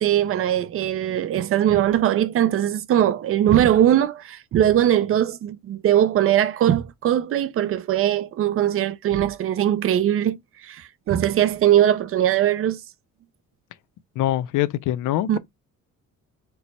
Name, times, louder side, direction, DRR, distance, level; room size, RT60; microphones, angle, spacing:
voice 1, 0.0-10.4 10.6-12.8 15.3-15.4, right 11 dB, 45° right, 0.5 m, -20 dB
voice 2, 14.2-15.4, left 13 dB, 75° left, 0.5 m, -23 dB
4.5 x 2.1 x 4.0 m
cardioid pair, 135°, 31 cm